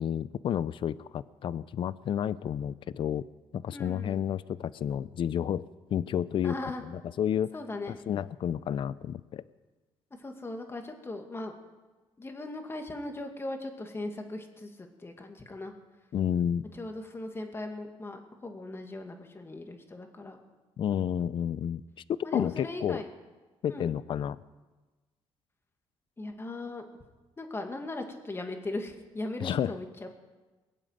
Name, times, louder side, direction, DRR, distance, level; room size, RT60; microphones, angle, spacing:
voice 1, 0.0-3.3 3.5-5.7 5.9-6.6 6.8-7.5 8.1-9.4 16.1-16.7 20.8-21.8 22.3-23.0 23.6-24.4 29.4-29.7, left 9 dB, 55° left, 18 dB, 0.5 m, -30 dB
voice 2, 3.7-4.3 6.4-6.8 7.5-8.0 10.2-11.5 12.2-15.7 16.7-20.4 22.2-23.1 23.7-23.9 26.2-26.8 27.4-30.1, left 2 dB, 25° left, 4 dB, 2.1 m, -38 dB
21.0 x 7.5 x 9.1 m, 1.2 s
cardioid pair, 95°, 10 cm